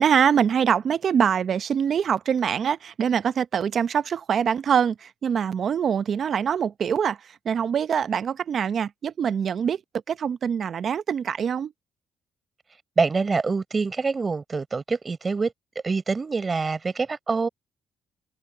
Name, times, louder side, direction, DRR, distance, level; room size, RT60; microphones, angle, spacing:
voice 1, 0.0-7.2 7.4-9.8 10.1-11.7, right 7 dB, 55° right, 0.7 m, -24 dB
voice 2, 13.0-15.5 15.8-17.5, right 4 dB, 30° right, 4.5 m, -25 dB
cardioid pair, 90°, 0 cm